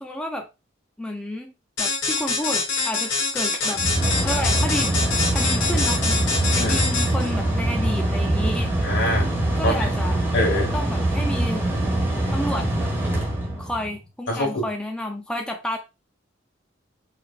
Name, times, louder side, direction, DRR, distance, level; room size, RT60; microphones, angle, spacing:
voice 1, 0.0-0.5 1.0-1.5 1.8-3.8 4.2-4.9 5.3-6.2 6.5-8.7 9.6-10.2 10.7-11.6 12.3-12.9 13.6-15.8, left 1 dB, 5° left, 2 dB, 0.4 m, -30 dB
sound 1, 1.8-7.3, left 4 dB, 85° left, 1.2 m, -25 dB
Mechanical fan, 3.4-14.0, right 1 dB, 10° right, 1.5 m, -23 dB
voice 2, 8.8-9.3 9.6-9.9 10.3-10.7 14.3-14.6, left 1 dB, 65° left, -1 dB, 1.9 m, -24 dB
4.8 x 3.3 x 2.3 m, 0.27 s
head